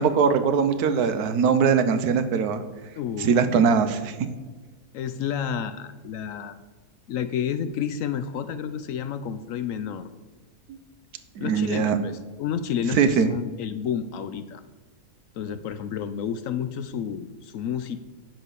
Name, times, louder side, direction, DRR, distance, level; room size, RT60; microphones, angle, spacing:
voice 1, 0.0-2.6 3.2-4.1 10.7-10.8 11.4-12.0 13.0-13.3, right 6 dB, 80° right, 10 dB, 1.3 m, -21 dB
voice 2, 3.0-3.5 4.9-6.6 7.1-10.1 11.4-14.6 15.3-18.0, left 8 dB, 70° left, 11 dB, 0.8 m, -30 dB
10.0 x 4.1 x 6.7 m, 1.4 s
omnidirectional pair, 1.6 m